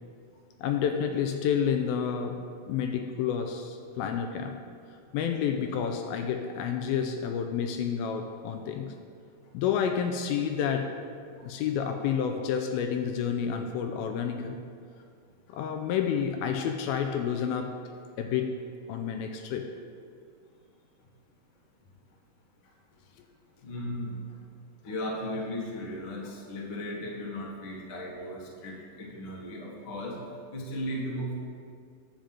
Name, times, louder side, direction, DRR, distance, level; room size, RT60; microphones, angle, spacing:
voice 1, 0.6-4.6 5.1-8.9 9.5-11.0 11.4-14.6 15.5-17.8 18.2-18.6 18.9-19.7, left 7 dB, 80° left, 5 dB, 2.4 m, -29 dB
voice 2, 23.6-24.4 24.8-30.2 30.5-31.4, left 1 dB, 50° left, -2 dB, 1.6 m, -36 dB
10.0 x 5.3 x 7.5 m, 2.2 s
omnidirectional pair, 4.4 m